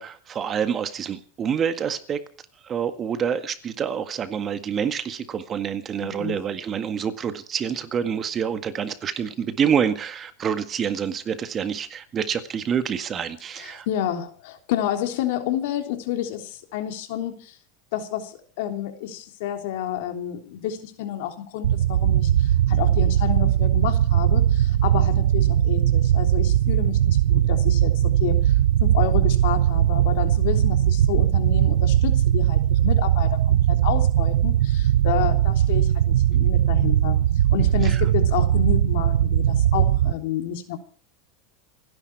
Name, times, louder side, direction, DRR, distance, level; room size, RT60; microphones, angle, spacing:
voice 1, 0.0-2.2 2.6-13.9 37.8-38.0, right 7 dB, 30° right, 10 dB, 1.8 m, -27 dB
voice 2, 6.0-6.4 13.6-17.5 17.9-28.5 28.8-37.2 37.5-40.8, left 11 dB, 70° left, 6 dB, 3.3 m, -30 dB
sound 1, 21.6-40.1, right 11 dB, 85° right, 0.8 m, -19 dB
28.0 x 10.5 x 4.7 m, 0.41 s
supercardioid pair, 125°, 0 cm